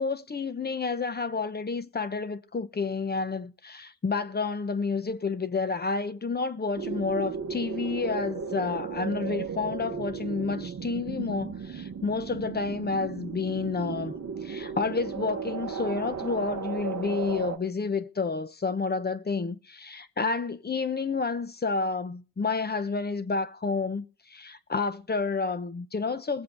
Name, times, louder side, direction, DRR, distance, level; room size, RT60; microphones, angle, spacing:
voice 1, 0.0-26.4, left 4 dB, 25° left, 0.9 m, -30 dB
sound 1, 6.8-17.6, right 6 dB, 40° right, 1.0 m, -35 dB
20.0 x 7.6 x 4.4 m
cardioid pair, 115°, 42 cm